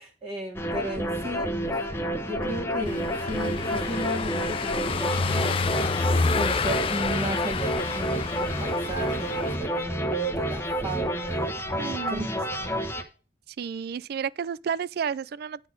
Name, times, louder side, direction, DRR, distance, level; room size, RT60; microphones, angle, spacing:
voice 1, 0.0-1.8 2.2-6.0 6.3-11.5 12.1-12.7, right 1 dB, 35° right, 1.7 m, -35 dB
sound 1, 0.5-13.0, equal, 15° left, 1.0 m, -29 dB
Car passing by / Engine, 2.9-9.6, left 4 dB, 30° left, 0.3 m, -29 dB
voice 2, 11.8-12.3 13.5-15.7, right 7 dB, 60° right, 0.3 m, -31 dB
10.0 x 4.1 x 7.2 m
head